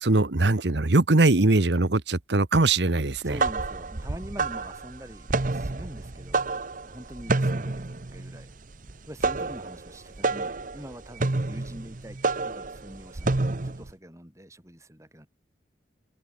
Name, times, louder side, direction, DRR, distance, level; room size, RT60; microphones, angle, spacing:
voice 1, 0.0-3.4, right 2 dB, 70° right, 1.2 m, -21 dB
sound 1, 3.1-13.9, right 3 dB, 45° right, 0.9 m, -29 dB
voice 2, 3.2-6.5 6.8-8.5 9.0-13.3 13.6-15.3, equal, 15° right, 6.5 m, -44 dB
open air
head